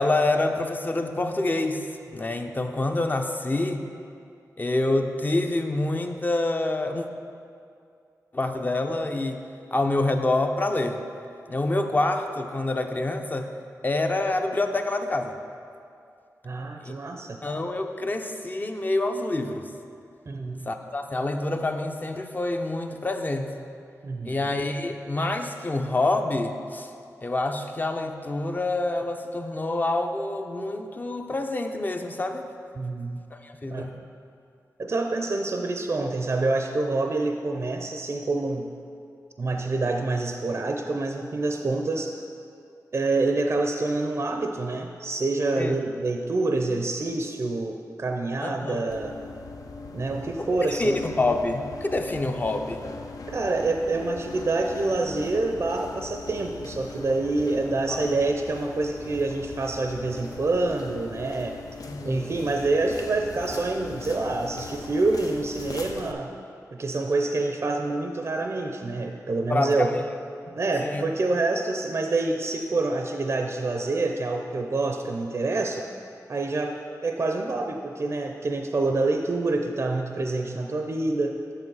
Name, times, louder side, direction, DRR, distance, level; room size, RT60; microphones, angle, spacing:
voice 1, 0.0-3.9 4.6-7.1 8.3-9.4 9.7-11.0 11.5-13.5 13.8-15.3 16.8-16.9 17.4-19.7 20.7-23.7 24.2-26.9 27.2-32.4 33.3-33.9 45.6-45.7 48.4-48.8 50.8-52.9 57.9-58.1 61.8-62.3 69.5-70.0 70.5-71.0, left 2 dB, 30° left, 5 dB, 0.6 m, -27 dB
voice 2, 16.4-17.4 20.3-20.6 24.0-24.4 32.8-33.2 33.6-33.9 34.8-38.7 39.4-42.2 42.9-49.2 49.9-51.0 53.3-61.6 62.0-66.4 66.7-70.0 70.6-75.9 76.3-76.8 77.0-81.4, right 3 dB, 45° right, 3 dB, 0.5 m, -27 dB
sound 1, 48.9-66.1, left 3 dB, 70° left, 0.6 m, -40 dB
7.6 x 7.0 x 4.7 m, 2.4 s
wide cardioid pair, 90°, 6 cm